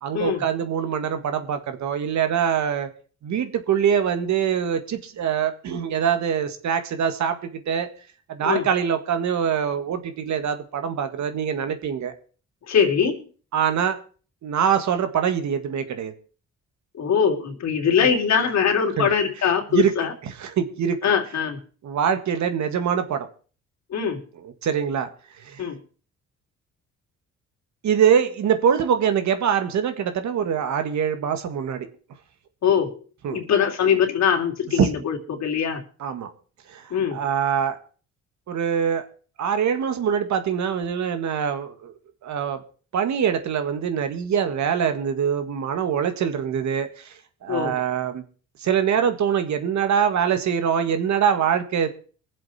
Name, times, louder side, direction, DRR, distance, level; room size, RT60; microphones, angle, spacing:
voice 1, 0.0-2.9 3.2-7.9 8.3-12.1 13.5-14.0 14.4-16.1 18.0-18.1 19.0-19.1 19.7-19.9 20.2-21.0 21.8-23.3 24.4-25.1 25.4-25.6 27.8-31.9 33.2-33.4 34.8-34.9 36.0-36.3 36.7-36.8 37.1-37.8 38.5-39.0 39.4-41.9 42.2-42.6 42.9-47.1 47.4-48.2 48.6-51.9, right 8 dB, 70° right, 9 dB, 1.9 m, -23 dB
voice 2, 12.7-13.2 17.0-20.1 21.0-21.6 23.9-24.2 25.6-25.8 32.6-32.9 33.3-35.8 36.9-37.2 47.5-47.7, left 7 dB, 60° left, 2 dB, 3.3 m, -22 dB
22.5 x 7.7 x 4.4 m, 0.41 s
cardioid pair, 90°, 30 cm